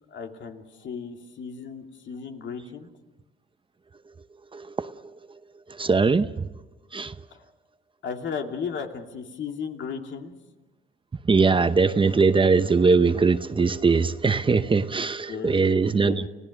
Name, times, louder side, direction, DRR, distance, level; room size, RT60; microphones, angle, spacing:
voice 1, 0.1-2.9 7.3-7.4 8.0-10.4 15.3-15.6 15.9-16.3, left 6 dB, 70° left, 2.6 m, -35 dB
voice 2, 4.5-5.4 5.7-6.5 6.9-7.3 11.3-16.3, right 4 dB, 25° right, 0.8 m, -21 dB
29.5 x 16.0 x 6.5 m
cardioid pair, 90°, 20 cm